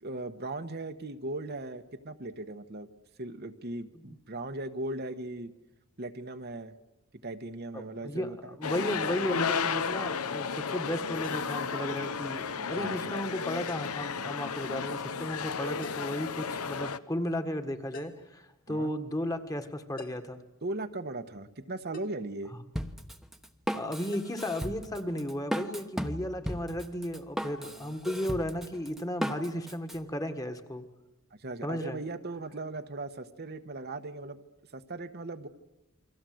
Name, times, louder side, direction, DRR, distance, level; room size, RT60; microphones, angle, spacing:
voice 1, 0.0-2.9 3.2-5.5 6.0-6.7 7.2-8.5 12.6-13.1 18.7-18.9 20.6-22.5 27.6-28.0 31.3-34.4 34.7-35.5, right 2 dB, 45° right, 7 dB, 1.1 m, -38 dB
voice 2, 7.7-20.4 22.5-22.6 23.7-30.8 31.6-32.0, left 1 dB, 15° left, 7 dB, 1.7 m, -34 dB
sound 1, 8.6-17.0, left 5 dB, 85° left, 1.0 m, -33 dB
sound 2, 11.2-11.6 13.7-14.1 15.8-16.2 17.9-18.3 20.0-20.4 21.9-22.2 24.1-24.3, left 3 dB, 40° left, 1.5 m, -47 dB
Drum kit, 22.7-30.0, equal, ahead, 1.1 m, -36 dB
29.0 x 23.5 x 7.8 m, 0.98 s
head